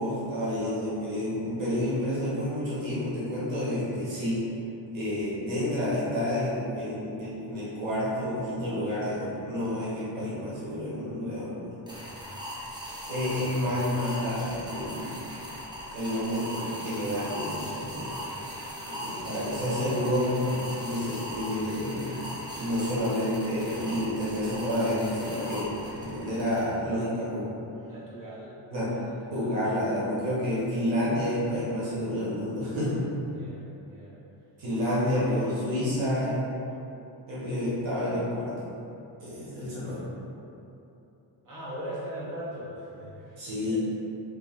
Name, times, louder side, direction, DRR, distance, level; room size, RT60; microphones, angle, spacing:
voice 1, 0.0-4.4 4.9-11.7 13.1-15.2 15.9-18.2 18.8-22.3 22.5-27.5 28.7-28.9 29.3-33.0 34.6-36.4 37.3-38.7 39.2-40.0 43.4-43.8, left 1 dB, 80° right, -9 dB, 1.2 m, -29 dB
sound 1, 11.9-26.6, equal, 10° right, 0.6 m, -39 dB
voice 2, 27.8-29.7 33.3-34.2 34.9-35.4 39.7-40.1 41.4-43.8, equal, 45° right, -7 dB, 1.1 m, -41 dB
3.4 x 2.6 x 3.6 m, 2.9 s
cardioid pair, 125°, 45 cm